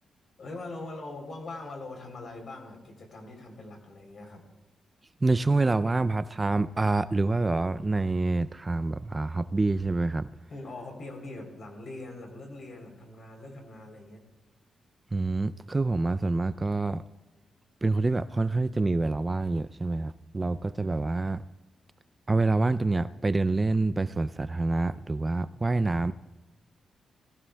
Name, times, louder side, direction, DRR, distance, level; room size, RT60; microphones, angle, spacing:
voice 1, 0.4-4.5 10.5-14.3, left 2 dB, 50° left, 3 dB, 3.3 m, -42 dB
voice 2, 5.2-10.3 15.1-17.0 17.8-21.4 22.3-26.1, right 3 dB, 20° right, 14 dB, 0.3 m, -27 dB
21.0 x 15.5 x 2.2 m, 1.1 s
wide cardioid pair, 130°, 0 cm